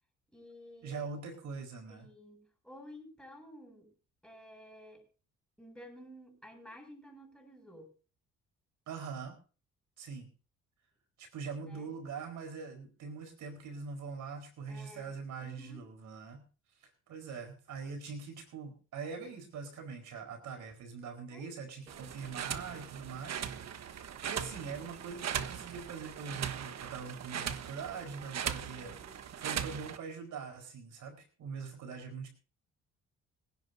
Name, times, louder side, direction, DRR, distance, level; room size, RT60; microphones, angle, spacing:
voice 1, 0.3-1.0 1.9-3.9 4.2-5.0 5.6-7.9 11.6-11.9 14.7-15.8 21.3-21.5 21.9-22.3 28.6-29.3, equal, 5° left, 3 dB, 7.5 m, -53 dB
voice 2, 0.8-2.1 8.9-9.4 10.0-10.3 11.2-16.4 16.8-29.0 29.4-32.3, right 5 dB, 80° right, 6 dB, 4.6 m, -43 dB
sound 1, 21.9-30.0, right 9 dB, 60° right, 1.3 m, -39 dB
25.5 x 11.0 x 2.7 m, 0.37 s
cardioid pair, 90°, 30 cm